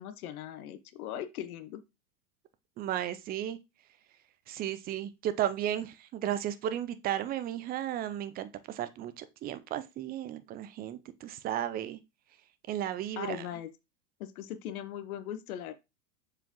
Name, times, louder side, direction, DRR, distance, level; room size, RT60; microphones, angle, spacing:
voice 1, 0.0-1.8 13.2-13.7 14.2-15.7, left 10 dB, 60° left, 1.0 m, -39 dB
voice 2, 2.8-3.6 4.5-12.0 12.7-13.5, right 11 dB, 20° right, 0.5 m, -34 dB
6.9 x 4.8 x 3.0 m
hypercardioid pair, 95°, 50 cm